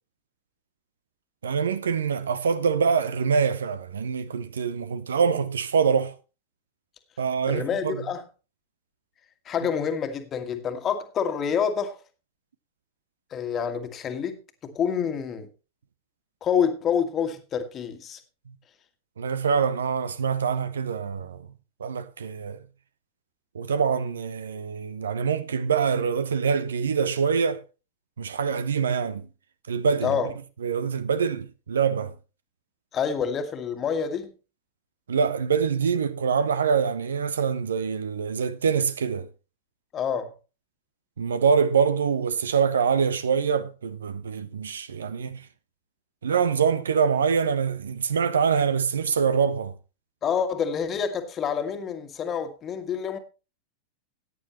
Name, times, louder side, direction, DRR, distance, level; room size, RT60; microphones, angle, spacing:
voice 1, 1.4-6.1 7.2-8.0 19.2-21.4 21.8-22.6 23.5-27.6 28.2-29.3 29.7-30.1 30.6-32.1 35.1-39.3 41.2-45.4 46.2-49.7, right 6 dB, 70° right, 0.8 m, -25 dB
voice 2, 7.5-8.2 9.4-12.0 13.3-15.5 16.4-18.2 30.0-30.3 32.9-34.3 39.9-40.3 50.2-53.2, left 7 dB, 25° left, 1.7 m, -27 dB
15.0 x 9.5 x 3.0 m
figure-of-eight pair, 90°, 0 cm